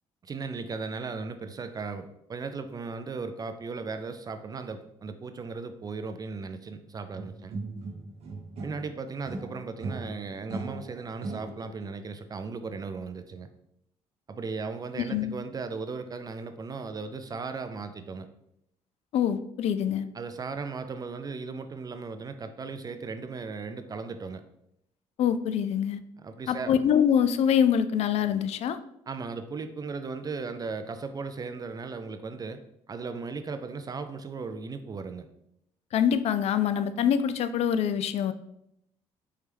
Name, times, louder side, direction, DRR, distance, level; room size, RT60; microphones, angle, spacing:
voice 1, 0.2-7.6 8.6-13.5 14.3-18.3 20.1-24.4 26.2-26.8 29.1-32.6 32.9-35.3, right 4 dB, 35° right, 9 dB, 0.4 m, -37 dB
sound 1, 7.1-8.9 9.2-11.8, right 3 dB, 60° right, 1.0 m, -38 dB
voice 2, 19.1-20.1 25.2-26.0 26.5-28.8 35.9-38.3, left 8 dB, 60° left, 12 dB, 0.4 m, -25 dB
4.6 x 3.2 x 3.4 m, 0.79 s
cardioid pair, 85°, 12 cm